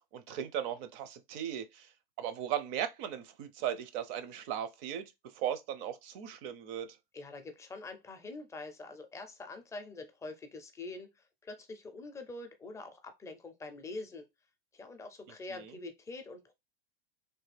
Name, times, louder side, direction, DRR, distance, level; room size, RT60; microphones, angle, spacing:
voice 1, 0.1-1.9 2.2-7.0, right 10 dB, 40° right, 0.6 m, -37 dB
voice 2, 7.1-14.2 14.7-16.5, left 3 dB, 10° left, 0.4 m, -45 dB
3.3 x 2.2 x 3.3 m
supercardioid pair, 130°, 29 cm